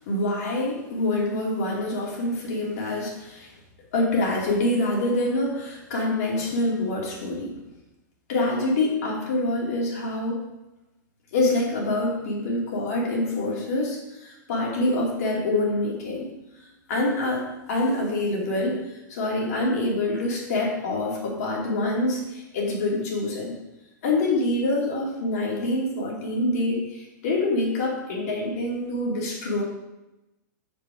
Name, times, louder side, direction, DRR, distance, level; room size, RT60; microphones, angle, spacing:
voice 1, 0.1-3.5 3.9-7.5 8.3-10.4 11.3-16.4 16.9-23.5 24.0-29.6, left 2 dB, 50° left, -3 dB, 2.5 m, -26 dB
8.1 x 5.3 x 4.9 m, 0.97 s
supercardioid pair, 165°, 10 cm